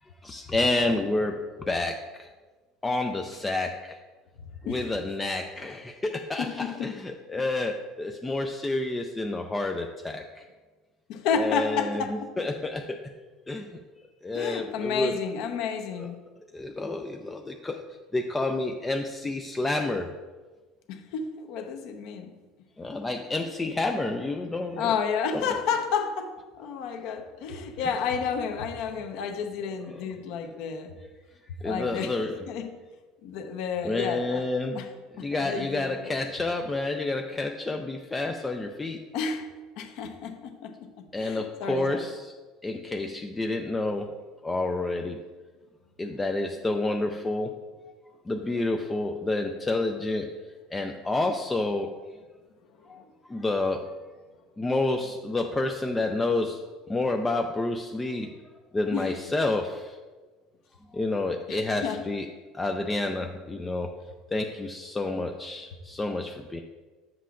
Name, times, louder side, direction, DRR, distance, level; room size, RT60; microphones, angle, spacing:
voice 1, 0.2-2.3 2.8-4.0 4.6-10.4 11.4-13.0 13.5-13.8 14.2-15.2 16.0-16.1 16.5-17.8 18.1-20.1 22.8-24.9 25.3-25.4 31.6-32.4 33.8-34.8 35.2-39.0 41.1-42.3 42.6-44.2 44.4-45.2 46.0-47.5 48.3-50.3 50.7-51.9 52.9-53.0 53.3-53.9 54.6-56.6 56.9-58.3 58.7-60.0 60.9-62.3 62.5-63.9 64.3-66.6, left 2 dB, 10° left, 4 dB, 0.3 m, -29 dB
voice 2, 4.7-5.0 5.6-5.7 6.4-7.0 7.4-7.5 11.1-12.3 14.3-16.2 20.9-22.3 24.8-30.9 31.6-32.2 32.5-32.8 33.2-34.4 34.7-34.9 35.2-36.2 39.1-39.5 39.8-42.1 53.0-53.1 58.9-59.2 61.5-62.0, left 6 dB, 55° left, 5 dB, 0.8 m, -31 dB
10.0 x 7.6 x 2.5 m, 1.3 s
cardioid pair, 175°, 0 cm